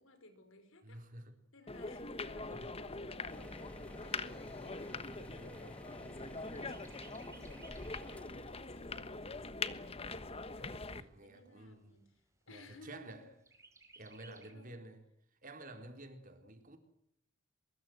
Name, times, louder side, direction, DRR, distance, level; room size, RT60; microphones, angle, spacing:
voice 1, 0.0-1.1 1.5-13.3 13.9-14.8, left 1 dB, 70° left, 5.5 m, -59 dB
voice 2, 0.8-1.3 2.5-2.7 8.0-8.7 11.0-11.9 12.5-13.2 14.0-15.0 15.4-16.8, right 1 dB, 40° right, 4.2 m, -51 dB
sound 1, 1.7-11.0, left 3 dB, 30° left, 1.3 m, -43 dB
Chirp tweet, 2.4-6.2 6.5-8.2 8.7-8.8 9.1-10.1 10.7-10.8 11.1-11.2 11.7-12.2 13.5-14.5, right 3 dB, 15° right, 4.8 m, -61 dB
sound 2, 3.3-10.2, equal, 5° left, 2.0 m, -54 dB
24.0 x 23.0 x 8.0 m
head